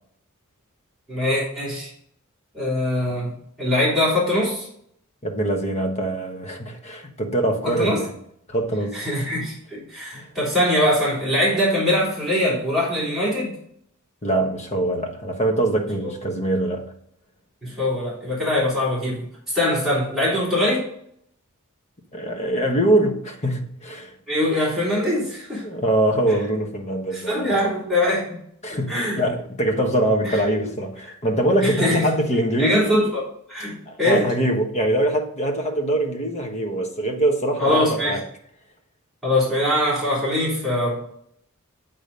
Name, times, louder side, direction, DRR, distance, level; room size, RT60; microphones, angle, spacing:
voice 1, 1.1-1.9 2.5-3.3 3.6-4.7 7.6-8.0 8.9-13.5 17.6-20.9 24.3-25.6 27.1-28.4 28.7-29.2 30.3-30.4 31.6-32.0 32.6-34.3 37.6-38.2 39.2-40.9, left 1 dB, ahead, 3.2 m, -22 dB
voice 2, 5.2-8.1 8.5-9.0 10.1-10.3 14.2-16.9 22.1-24.1 25.6-27.6 28.6-32.9 33.9-38.2, right 1 dB, 30° left, 1.3 m, -23 dB
8.6 x 4.0 x 5.3 m
head